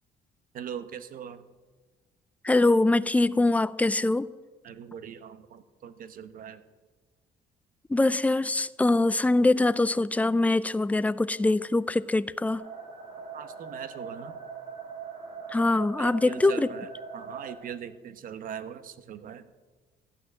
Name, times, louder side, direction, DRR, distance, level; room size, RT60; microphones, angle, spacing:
voice 1, 0.5-1.5 4.6-6.6 13.3-14.4 16.0-19.5, right 8 dB, 55° right, 1.0 m, -41 dB
voice 2, 2.4-4.3 7.9-12.6 15.5-16.7, left 2 dB, 10° left, 0.4 m, -23 dB
sound 1, 12.5-17.5, right 5 dB, 85° right, 5.0 m, -41 dB
14.0 x 6.2 x 9.6 m
cardioid pair, 110°, 17 cm